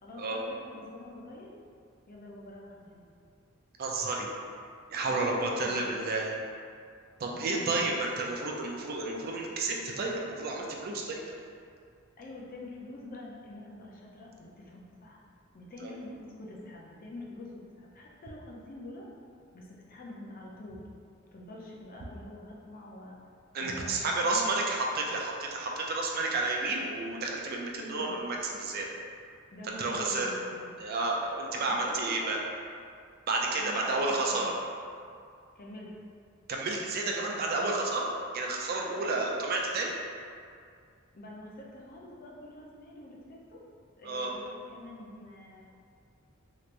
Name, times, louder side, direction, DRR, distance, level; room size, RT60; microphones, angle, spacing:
voice 1, 0.0-1.5 2.1-3.1 5.0-5.9 7.2-8.0 12.2-15.2 15.5-17.5 17.8-19.1 19.5-20.8 21.3-23.2 23.6-24.5 27.8-28.2 29.5-30.8 31.8-32.3 33.6-34.5 35.6-35.9 37.2-37.4 38.9-39.2 41.1-43.6 44.0-45.6, left 1 dB, 45° left, -3 dB, 0.5 m, -46 dB
voice 2, 3.8-4.3 4.9-6.3 7.2-11.2 15.8-15.9 23.5-28.9 29.8-30.3 30.8-32.4 33.3-34.5 36.5-38.1 38.3-39.9 44.0-44.3, right 2 dB, 45° right, -1 dB, 0.4 m, -31 dB
3.2 x 2.9 x 2.5 m, 2.3 s
head